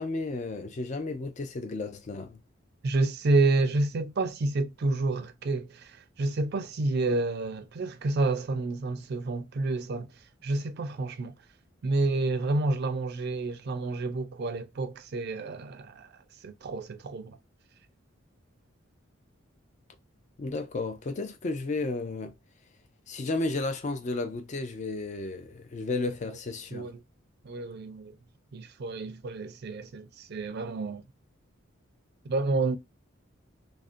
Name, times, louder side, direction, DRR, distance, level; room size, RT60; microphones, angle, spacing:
voice 1, 0.0-2.4 20.4-22.3 23.1-26.9, left 3 dB, 35° left, 0.4 m, -33 dB
voice 2, 2.8-10.1 10.4-11.3 11.8-16.1 16.4-17.4 26.7-27.0 27.4-28.1 28.5-31.0 32.2-32.8, right 2 dB, 55° right, 0.4 m, -29 dB
2.4 x 2.1 x 2.4 m
head